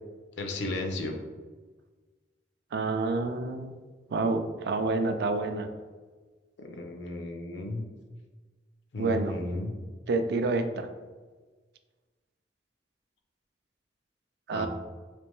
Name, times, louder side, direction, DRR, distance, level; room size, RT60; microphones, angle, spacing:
voice 1, 0.4-1.2 6.6-7.8 8.9-9.7 14.5-14.7, left 2 dB, 90° left, 4 dB, 0.5 m, -34 dB
voice 2, 2.7-3.7 4.1-5.7 9.0-9.4 10.1-10.9 14.5-14.7, right 3 dB, 65° right, 8 dB, 0.3 m, -28 dB
3.3 x 3.0 x 3.0 m, 1.4 s
head